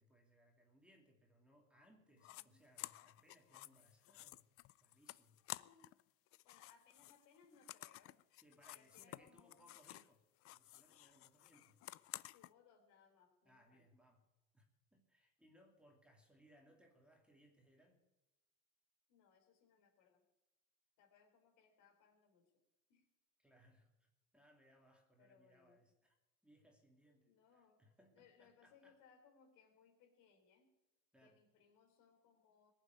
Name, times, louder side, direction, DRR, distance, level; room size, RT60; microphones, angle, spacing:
voice 1, 0.0-4.4 4.8-5.4 8.4-10.3 10.5-11.8 13.5-14.2 14.5-18.0 23.4-26.1 26.4-29.0 31.1-31.4, equal, 5° right, 1 dB, 2.6 m, -69 dB
voice 2, 2.1-2.6 5.6-5.9 6.4-8.2 8.7-9.7 12.3-13.9 19.1-20.2 21.0-22.5 22.9-23.1 25.2-25.8 27.2-30.7 31.2-32.7, left 6 dB, 65° left, 4 dB, 3.8 m, -70 dB
sound 1, 2.2-2.4 2.8-6.0 6.3-10.1 10.4-12.5, left 17 dB, 45° left, 0.4 m, -53 dB
19.5 x 7.4 x 9.5 m, 0.98 s
supercardioid pair, 120°, 33 cm